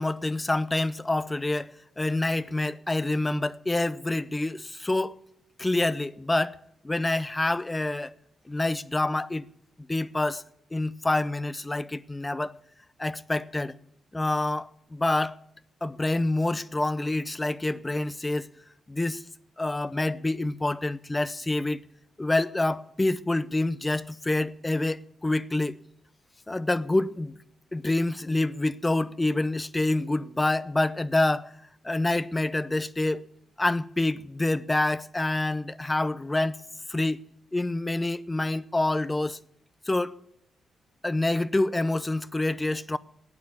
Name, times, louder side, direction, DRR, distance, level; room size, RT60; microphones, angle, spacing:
voice 1, 0.0-5.2 5.6-6.6 6.8-8.1 8.5-9.5 9.8-10.4 10.7-12.6 13.0-13.8 14.1-15.4 15.8-18.5 18.9-19.2 19.6-21.8 22.2-25.7 26.5-27.4 27.7-31.5 31.8-33.2 33.6-36.6 36.9-37.2 37.5-39.4 39.9-40.2 41.0-43.0, left 2 dB, 20° left, 0.7 m, -27 dB
12.0 x 9.4 x 9.9 m
hypercardioid pair, 40°, 0 cm